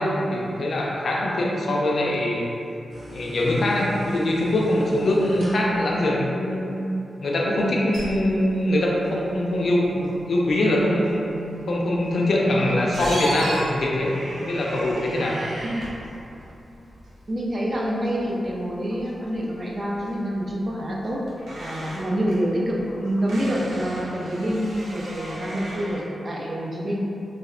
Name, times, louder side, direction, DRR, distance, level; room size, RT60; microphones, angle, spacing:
voice 1, 0.0-2.4 3.1-6.8 7.2-11.2 11.7-15.4, left 1 dB, 55° left, -3 dB, 0.4 m, -23 dB
sound 1, 2.9-5.9, equal, 70° right, 0.9 m, -40 dB
sound 2, 7.9-26.0, right 1 dB, 90° right, 0.5 m, -38 dB
voice 2, 17.3-21.2 21.6-27.1, equal, 35° right, -3 dB, 0.3 m, -27 dB
3.5 x 2.0 x 2.3 m, 2.7 s
wide cardioid pair, 155°, 0 cm